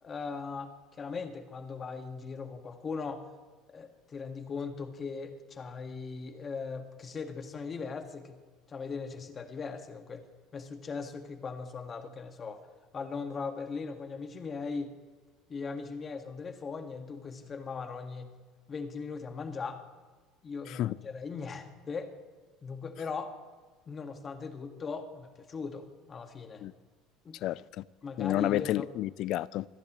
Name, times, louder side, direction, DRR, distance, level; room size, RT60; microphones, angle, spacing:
voice 1, 0.0-3.3 3.7-8.4 8.7-10.2 10.5-12.7 12.9-14.9 15.5-18.3 18.7-19.8 20.4-22.1 22.6-23.4 23.9-26.6 27.2-27.4 28.0-28.9, left 5 dB, 30° left, 1.6 m, -39 dB
voice 2, 27.4-27.8 28.2-29.7, left 14 dB, 60° left, 0.4 m, -30 dB
26.0 x 10.5 x 3.1 m
supercardioid pair, 110°, 0 cm